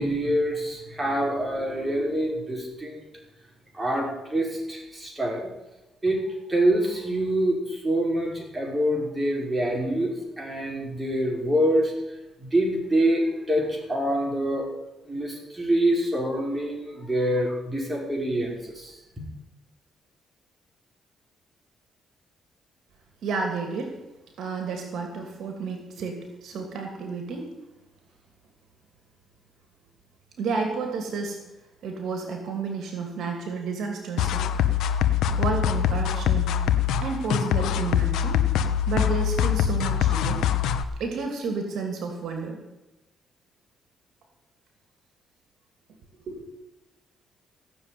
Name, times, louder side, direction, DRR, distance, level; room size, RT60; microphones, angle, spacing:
voice 1, 0.0-3.0 3.7-5.5 6.0-6.2 6.5-11.9 12.4-14.7 15.1-19.2, right 1 dB, 15° right, -1 dB, 5.9 m, -26 dB
voice 2, 23.2-23.9 24.4-27.5 30.4-31.4 31.8-34.5 35.4-36.6 37.0-38.4 38.9-40.4 41.0-42.6 46.3-46.4, right 4 dB, 70° right, 4 dB, 2.7 m, -31 dB
sound 1, 34.2-40.8, left 9 dB, 85° left, 1.1 m, -23 dB
17.0 x 7.2 x 9.5 m, 1.0 s
cardioid pair, 90°, 0 cm